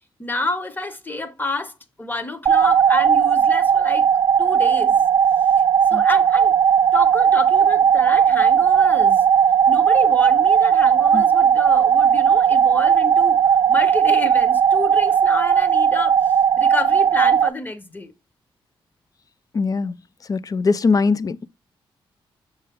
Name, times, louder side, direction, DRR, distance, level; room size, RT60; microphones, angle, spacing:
voice 1, 0.2-4.1 4.4-5.1 5.9-6.6 6.9-9.2 9.7-13.4 13.7-16.1 16.6-18.1, left 2 dB, 20° left, 1.1 m, -29 dB
sound 1, 2.5-17.5, right 8 dB, 50° right, 0.3 m, -16 dB
voice 2, 19.5-20.0 20.3-21.4, left 4 dB, 40° left, 0.4 m, -21 dB
6.7 x 4.4 x 3.6 m
cardioid pair, 85°, 10 cm